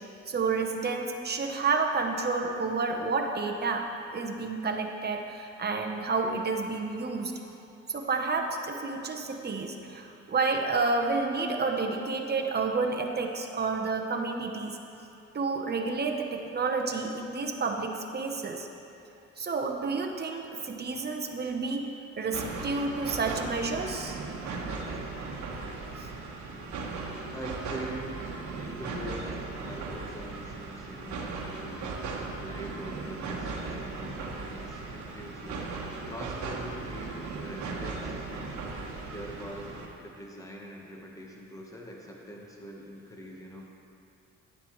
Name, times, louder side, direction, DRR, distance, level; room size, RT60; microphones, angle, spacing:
voice 1, 0.3-3.8 4.1-7.3 7.9-14.8 15.3-18.7 19.4-21.9 22.2-24.2 26.0-26.1, right 4 dB, 35° right, 2 dB, 1.0 m, -30 dB
sound 1, 22.3-39.9, right 3 dB, 70° right, 1.3 m, -37 dB
voice 2, 27.3-43.7, equal, 10° left, -1 dB, 1.3 m, -43 dB
10.5 x 9.4 x 3.2 m, 2.8 s
cardioid pair, 90°, 30 cm